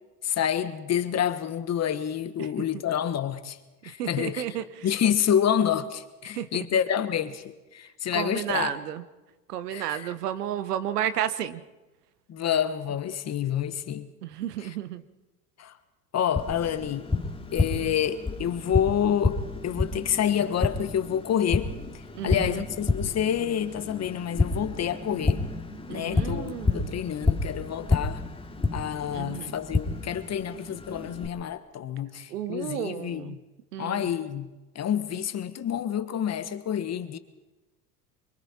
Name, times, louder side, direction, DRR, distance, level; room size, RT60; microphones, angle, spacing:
voice 1, 0.2-3.6 3.8-4.6 4.8-7.4 7.7-8.7 9.7-10.1 12.3-14.1 14.6-14.7 15.6-15.7 16.1-17.1 17.5-21.7 22.2-25.4 25.9-28.2 28.7-33.4 33.8-37.2, left 9 dB, 35° left, 11 dB, 1.5 m, -28 dB
voice 2, 4.0-4.9 6.4-6.6 8.1-9.0 9.5-11.6 14.2-15.0 17.8-17.9 22.1-22.6 25.9-27.0 29.1-29.5 32.3-33.4 33.7-34.1, right 11 dB, 75° right, 13 dB, 1.3 m, -32 dB
Tap, 16.4-31.3, left 3 dB, 10° left, 2.5 m, -30 dB
25.5 x 23.5 x 4.4 m, 1.1 s
hypercardioid pair, 80°, 47 cm